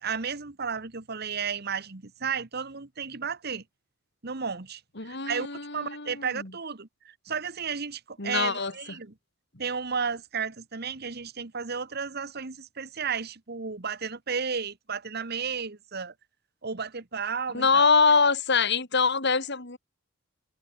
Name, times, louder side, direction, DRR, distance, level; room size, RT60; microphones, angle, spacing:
voice 1, 0.0-3.6 4.2-5.5 5.7-9.1 9.6-16.1 16.6-17.9, right 6 dB, 55° right, 1.4 m, -33 dB
voice 2, 5.0-6.5 8.2-8.7 17.5-19.8, left 4 dB, 55° left, 3.7 m, -24 dB
head